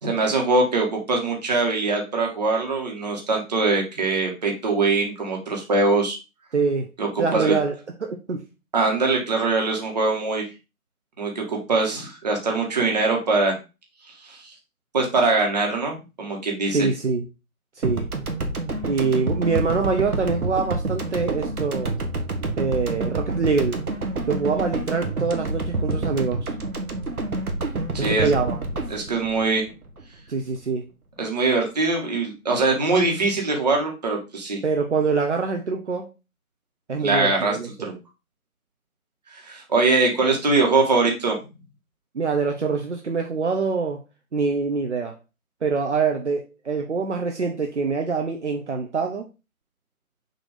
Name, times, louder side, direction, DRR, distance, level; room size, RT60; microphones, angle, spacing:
voice 1, 0.0-6.2 7.0-7.5 8.7-10.5 11.2-13.6 14.2-14.5 14.9-16.9 27.9-28.3 28.9-29.7 31.2-34.6 37.0-37.9 39.3-41.4, right 3 dB, 30° right, 1.6 m, -22 dB
voice 2, 6.5-6.9 7.2-7.7 8.0-8.4 16.7-17.3 17.8-18.1 18.9-21.9 22.6-23.8 24.3-26.5 28.0-28.6 30.3-30.9 34.6-36.1 36.9-37.9 42.1-44.0 44.3-45.2 45.6-49.3, right 4 dB, 55° right, 0.8 m, -24 dB
sound 1, 17.8-30.3, right 2 dB, 80° right, 1.4 m, -28 dB
6.4 x 3.0 x 4.9 m
figure-of-eight pair, 165°, 43 cm